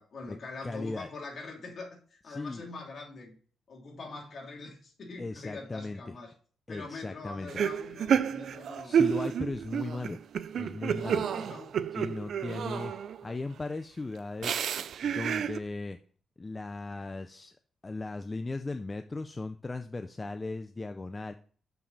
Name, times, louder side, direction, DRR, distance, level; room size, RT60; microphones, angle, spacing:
voice 1, 0.0-3.4 3.7-6.3 6.7-9.1 10.9-11.8, left 3 dB, 45° left, 0 dB, 2.7 m, -43 dB
voice 2, 0.6-1.1 2.3-2.6 5.2-6.0 6.7-7.6 8.8-10.2 10.5-11.2 11.9-12.9 13.2-14.7 15.0-16.0 16.4-17.6 17.8-21.3, left 3 dB, 20° left, 8 dB, 0.4 m, -37 dB
sound 1, 7.5-13.3 14.4-15.6, right 8 dB, 60° right, 0.4 m, -30 dB
6.9 x 5.9 x 4.0 m, 0.43 s
cardioid pair, 130°, 0 cm